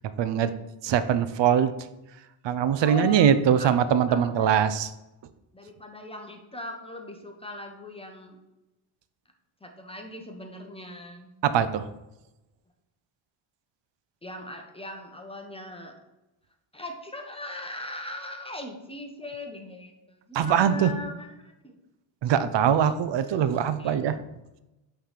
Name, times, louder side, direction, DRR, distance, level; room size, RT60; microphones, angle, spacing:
voice 1, 0.2-0.5 0.8-1.7 2.4-4.9 11.4-11.9 20.3-20.9 22.2-24.2, right 8 dB, 60° right, 12 dB, 0.6 m, -22 dB
voice 2, 2.8-4.6 5.5-8.4 9.6-11.3 14.2-15.9 16.7-21.8 22.8-22.9 23.2-24.0, left 1 dB, 10° left, 3 dB, 0.9 m, -40 dB
5.7 x 3.4 x 5.7 m, 0.96 s
cardioid pair, 105°, 50 cm